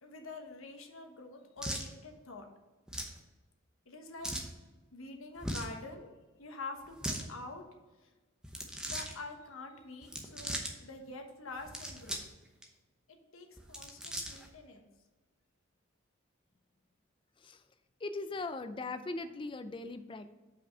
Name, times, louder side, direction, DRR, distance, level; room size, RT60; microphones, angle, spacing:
voice 1, 0.0-2.5 3.9-4.3 4.9-7.6 8.0-8.1 8.8-12.2 13.1-14.9, left 2 dB, 85° left, 4 dB, 1.1 m, -46 dB
sound 1, 1.6-1.9 2.9-3.2 4.2-4.5 5.4-5.8 6.8-7.2 8.4-9.1 10.0-10.7 11.6-12.3 12.6-12.7 13.6-14.5, equal, 5° right, 0.8 m, -39 dB
voice 2, 18.0-20.3, left 3 dB, 25° left, 10 dB, 0.4 m, -39 dB
5.7 x 5.0 x 5.4 m, 1.2 s
head